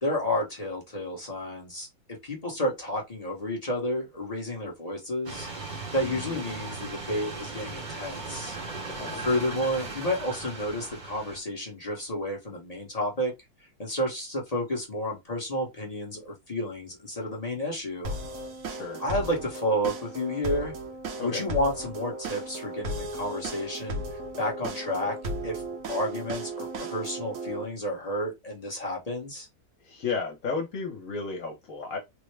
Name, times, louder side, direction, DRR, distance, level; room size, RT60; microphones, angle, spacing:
voice 1, 0.0-8.6 9.1-13.3 13.8-18.1 18.7-20.7 21.2-24.0 24.4-25.2 25.4-25.6 25.9-29.5, left 1 dB, 30° left, 0.9 m, -31 dB
sound 1, 5.2-11.4, right 3 dB, 35° right, 0.9 m, -38 dB
voice 2, 6.0-6.3 8.9-9.2 18.7-19.0 21.2-21.4 29.8-32.0, left 4 dB, 60° left, 1.2 m, -33 dB
sound 2, 18.0-27.6, right 1 dB, 65° right, 1.2 m, -36 dB
3.6 x 2.1 x 3.2 m
omnidirectional pair, 1.6 m